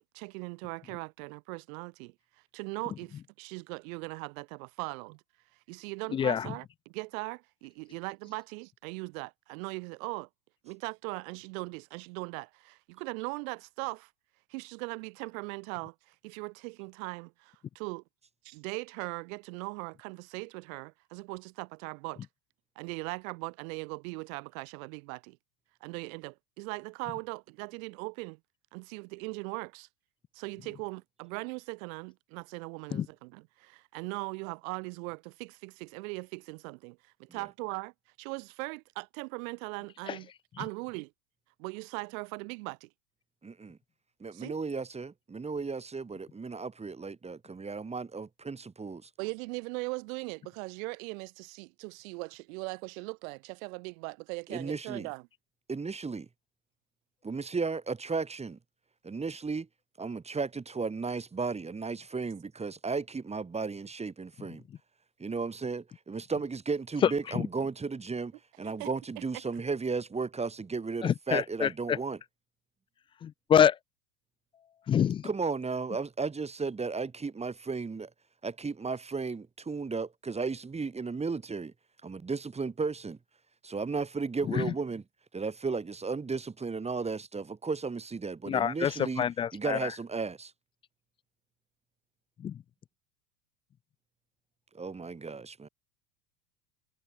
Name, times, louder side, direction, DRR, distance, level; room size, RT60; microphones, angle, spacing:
voice 1, 0.0-2.1 2.5-5.2 5.7-10.3 10.6-14.1 14.5-18.0 18.4-22.3 22.8-25.4 25.8-28.4 28.7-29.9 30.3-37.9 38.2-40.3 40.6-41.1 41.6-42.9 44.3-44.5 49.2-55.3 68.6-68.9 69.2-69.3, right 29 dB, 55° right, 4.0 m, -39 dB
voice 2, 6.1-6.4 32.9-33.0 71.0-71.7 73.2-73.7 74.9-75.2 84.6-84.7 88.5-88.9 89.2-89.8 92.4-92.5, left 8 dB, 10° left, 0.4 m, -26 dB
voice 3, 43.4-43.8 44.2-49.1 54.5-55.1 55.7-56.3 57.2-58.6 59.0-59.7 60.0-64.6 65.2-72.2 75.2-78.1 78.4-81.7 82.0-83.2 83.6-85.0 85.3-89.2 89.5-90.5 94.7-95.7, right 4 dB, 15° right, 2.0 m, -34 dB
figure-of-eight pair, 85°, 49 cm